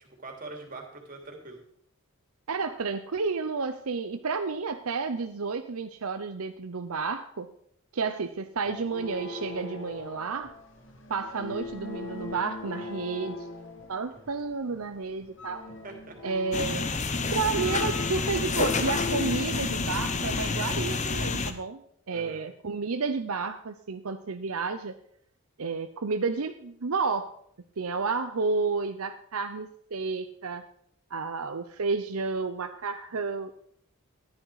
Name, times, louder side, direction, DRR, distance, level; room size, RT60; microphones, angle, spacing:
voice 1, 0.0-1.6 11.4-11.6 14.2-14.4 15.8-16.2 22.1-22.5, right 2 dB, 40° right, 3 dB, 2.8 m, -44 dB
voice 2, 2.5-7.5 7.9-10.5 11.1-13.4 13.9-15.7 16.2-16.9 17.3-21.8 22.1-25.0 25.6-27.3 27.8-30.6 31.1-33.5, right 4 dB, 80° right, 8 dB, 0.7 m, -31 dB
sound 1, 8.6-21.2, left 3 dB, 60° left, 1.6 m, -40 dB
sound 2, 16.5-21.5, left 3 dB, 35° left, 0.9 m, -29 dB
14.5 x 10.5 x 4.9 m, 0.66 s
head